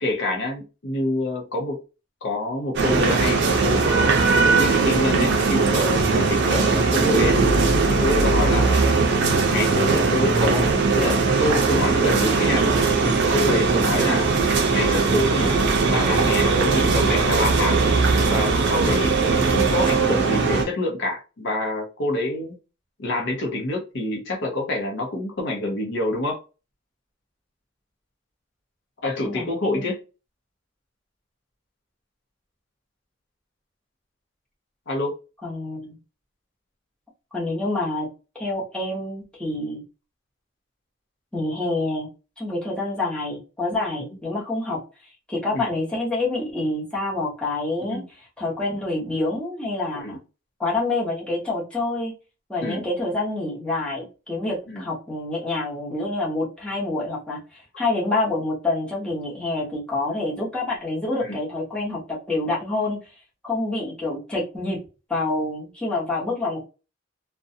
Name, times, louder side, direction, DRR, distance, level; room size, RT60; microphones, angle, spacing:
voice 1, 0.0-1.8 2.2-4.2 4.4-7.4 7.9-8.8 9.2-12.7 13.0-14.3 14.7-15.5 15.9-17.8 18.3-22.5 23.0-26.4 29.0-30.0 34.9-35.1 45.5-45.7 47.8-48.1 49.9-50.2 52.6-52.8 54.7-54.8 61.2-61.4, left 2 dB, 60° left, 0 dB, 0.7 m, -26 dB
sound 1, 2.7-20.6, right 4 dB, 60° right, 0.5 m, -20 dB
voice 2, 29.2-29.9 35.4-36.0 37.3-38.1 38.3-39.8 41.3-42.1 42.4-44.8 45.3-50.2 50.6-52.1 52.5-62.0 62.3-63.0 63.4-64.8 65.1-66.6, left 2 dB, 5° left, -6 dB, 0.9 m, -27 dB
2.5 x 2.2 x 2.6 m, 0.31 s
head